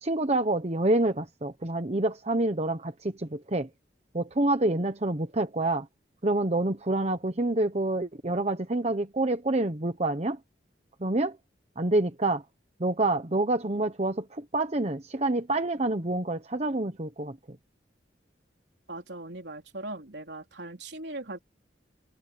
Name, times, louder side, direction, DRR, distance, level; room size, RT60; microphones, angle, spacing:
voice 1, 0.0-3.7 4.1-5.9 6.2-10.4 11.0-11.4 11.8-12.4 12.8-17.4, right 2 dB, 35° right, 1.0 m, -27 dB
voice 2, 18.9-21.4, right 2 dB, 70° right, 3.7 m, -39 dB
head